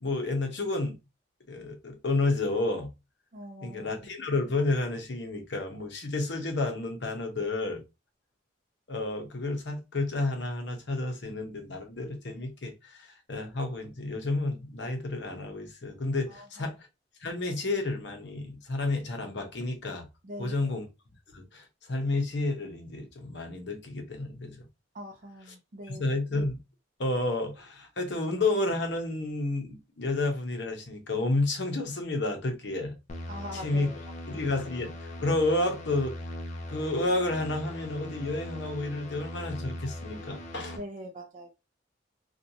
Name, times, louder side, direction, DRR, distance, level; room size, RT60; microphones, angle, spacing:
voice 1, 0.0-1.0 1.5-2.9 3.6-7.8 8.9-16.7 17.2-20.1 20.4-20.9 21.3-24.7 25.9-26.6 27.0-33.0 33.5-33.9 34.3-34.9 35.2-36.1 36.7-40.8, left 2 dB, 65° left, 0.7 m, -30 dB
voice 2, 3.3-3.9 16.3-16.7 20.2-20.7 24.9-26.0 33.3-33.9 34.3-34.5 40.8-41.5, equal, 40° right, 0.5 m, -43 dB
sound 1, 33.1-40.8, left 1 dB, 40° left, 0.4 m, -40 dB
2.5 x 2.3 x 2.7 m
head